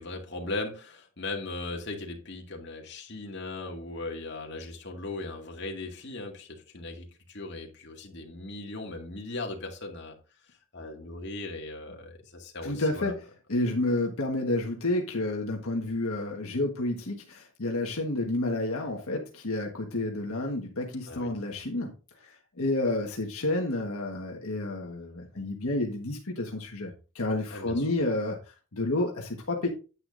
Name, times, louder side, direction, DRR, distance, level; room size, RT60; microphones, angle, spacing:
voice 1, 0.0-10.2 10.7-13.1 21.1-21.3 27.5-27.8, left 2 dB, 50° left, 2.1 m, -38 dB
voice 2, 12.6-13.2 13.5-21.9 22.2-29.7, left 2 dB, 75° left, 1.5 m, -30 dB
9.7 x 9.2 x 2.6 m
head